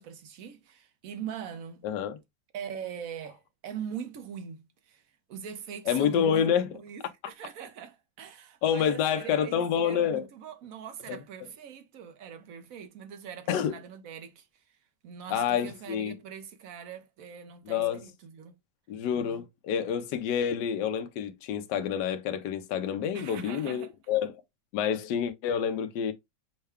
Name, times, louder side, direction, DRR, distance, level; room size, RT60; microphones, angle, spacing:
voice 1, 0.0-1.8 2.5-14.8 15.0-18.6 23.1-23.9, right 8 dB, 60° right, 1.0 m, -42 dB
voice 2, 1.8-2.2 5.9-6.7 8.6-10.2 13.5-13.7 15.3-16.1 17.7-18.0 18.9-24.3 24.7-26.1, left 8 dB, 70° left, 1.2 m, -28 dB
6.5 x 2.2 x 3.4 m
omnidirectional pair, 2.1 m